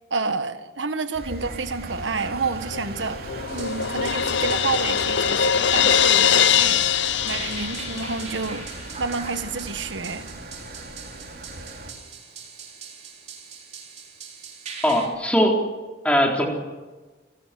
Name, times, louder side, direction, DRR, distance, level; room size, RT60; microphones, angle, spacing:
voice 1, 0.1-6.8 7.2-8.7 9.0-10.3, right 4 dB, 80° right, 10 dB, 1.5 m, -29 dB
Engine, 1.1-11.9, right 1 dB, 55° right, 3.0 m, -38 dB
Crash cymbal, 2.7-8.4, left 8 dB, 75° left, 0.7 m, -22 dB
sound 1, 3.5-15.1, right 6 dB, 35° right, 4.2 m, -41 dB
voice 2, 14.8-15.6 16.0-16.5, equal, 5° left, 1 dB, 4.0 m, -20 dB
28.5 x 15.5 x 7.7 m, 1.3 s
head